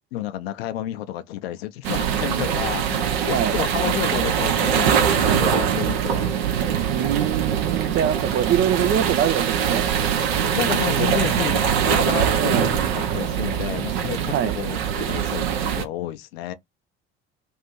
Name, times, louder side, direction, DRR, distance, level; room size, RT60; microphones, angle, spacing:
voice 1, 0.1-6.3 7.9-8.0 10.5-16.5, left 12 dB, 65° left, 0.6 m, -31 dB
sound 1, 1.8-15.8, right 8 dB, 70° right, 0.7 m, -22 dB
voice 2, 6.9-9.9 12.4-12.7 14.3-14.6, right 10 dB, 35° right, 0.4 m, -24 dB
2.7 x 2.6 x 4.2 m
figure-of-eight pair, 55°, 32 cm